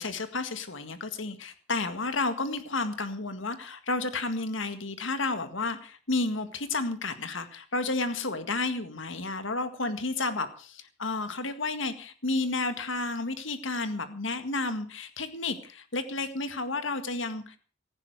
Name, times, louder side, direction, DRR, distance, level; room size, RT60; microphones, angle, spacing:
voice 1, 0.0-17.6, left 3 dB, 70° left, 10 dB, 1.9 m, -31 dB
17.5 x 15.5 x 4.8 m, 0.38 s
head